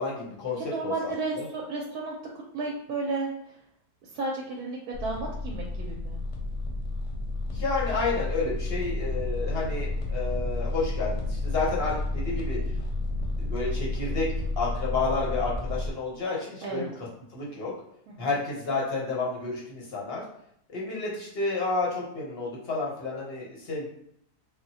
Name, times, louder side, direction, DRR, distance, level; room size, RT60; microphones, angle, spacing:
voice 1, 0.0-1.5 7.5-12.6 13.4-14.3 14.6-17.1 17.3-17.7 18.2-20.2 20.7-23.9, left 3 dB, 55° left, -4 dB, 0.7 m, -30 dB
voice 2, 0.6-2.1 2.5-3.6 4.1-6.2 16.6-16.9 18.1-18.3, right 3 dB, 70° right, -1 dB, 1.0 m, -33 dB
sound 1, 4.9-15.9, left 2 dB, 85° left, 1.3 m, -31 dB
3.6 x 2.1 x 2.7 m, 0.71 s
omnidirectional pair, 1.8 m